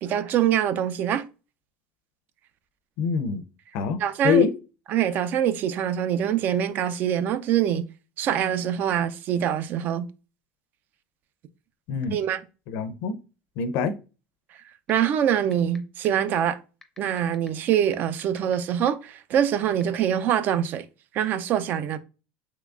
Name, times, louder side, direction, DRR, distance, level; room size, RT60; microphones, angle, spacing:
voice 1, 0.0-1.2 4.0-4.5 4.9-7.9 8.2-10.1 12.1-12.4 14.9-16.6 17.0-20.8 21.1-22.0, right 10 dB, 50° right, 0.4 m, -24 dB
voice 2, 3.0-3.4 3.7-4.0 4.2-4.5 11.9-12.2 12.7-13.2 13.6-13.9, left 7 dB, 65° left, 0.5 m, -24 dB
sound 1, 14.9-15.0 15.4-15.8 16.0-16.1 16.8-18.5 18.9-19.0 19.8-20.0, left 3 dB, 10° left, 0.5 m, -46 dB
3.7 x 3.0 x 2.3 m
supercardioid pair, 120°, 4 cm